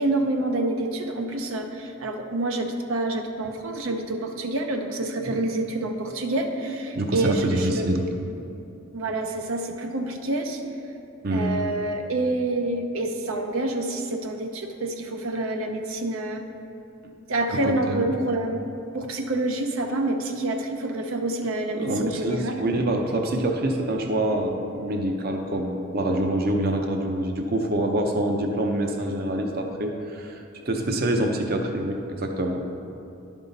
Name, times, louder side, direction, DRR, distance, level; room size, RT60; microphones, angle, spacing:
voice 1, 0.0-8.0 8.9-10.6 11.3-16.4 17.3-18.6 18.9-22.5, right 2 dB, 90° right, 4 dB, 0.7 m, -27 dB
voice 2, 7.0-8.0 11.2-11.6 17.6-18.1 21.8-32.6, right 1 dB, 50° right, 3 dB, 0.6 m, -26 dB
11.0 x 5.4 x 4.0 m, 2.7 s
head